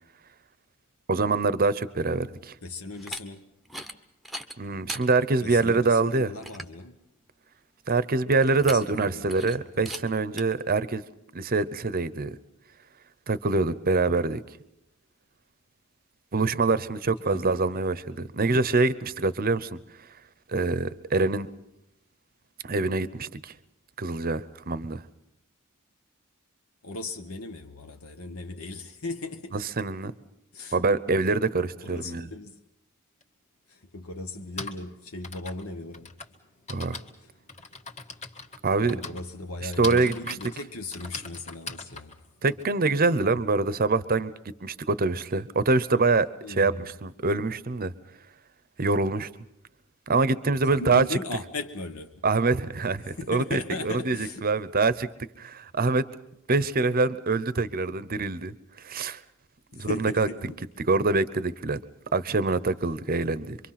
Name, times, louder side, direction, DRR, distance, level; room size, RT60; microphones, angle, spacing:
voice 1, 1.1-2.5 4.6-6.3 7.9-11.0 11.3-12.3 13.3-14.4 16.3-19.8 20.5-21.5 22.6-23.5 24.0-25.0 29.5-30.1 30.7-32.3 36.7-37.0 38.6-39.0 39.6-40.4 42.4-44.3 44.6-47.9 48.8-49.3 50.1-51.2 52.2-55.1 55.4-56.0 56.5-58.5 58.8-59.2 59.8-60.3 60.8-61.8 62.1-63.6, right 3 dB, 40° right, 0.8 m, -25 dB
voice 2, 2.6-3.4 5.4-7.0 8.6-9.4 9.8-9.9 17.2-17.6 26.8-29.6 30.5-30.8 31.8-32.6 33.7-36.1 38.8-42.1 46.4-46.9 50.8-52.1 53.2-54.5 59.7-60.4, left 3 dB, 70° left, 1.3 m, -37 dB
sound 1, 2.9-3.2 3.6-4.0 4.2-5.0 5.6-5.7 6.1-6.2 6.4-6.8 8.4-9.0 9.3-9.5 9.8-10.0 10.4-10.5, right 1 dB, ahead, 1.0 m, -38 dB
Typing, 33.2-33.3 34.3-43.4, left 3 dB, 30° left, 1.7 m, -41 dB
26.0 x 23.5 x 5.9 m
head